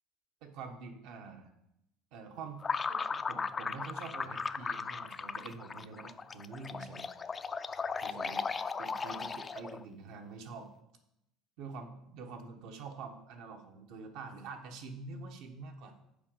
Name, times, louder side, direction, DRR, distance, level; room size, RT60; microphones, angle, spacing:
voice 1, 0.4-1.5 2.1-2.6 2.9-7.0 8.0-8.5 8.8-10.7 11.6-15.9, right 4 dB, 70° right, 4 dB, 1.3 m, -46 dB
sound 1, 2.6-9.8, left 5 dB, 25° left, 0.4 m, -37 dB
6.9 x 5.0 x 6.9 m, 0.83 s
supercardioid pair, 120°, 0 cm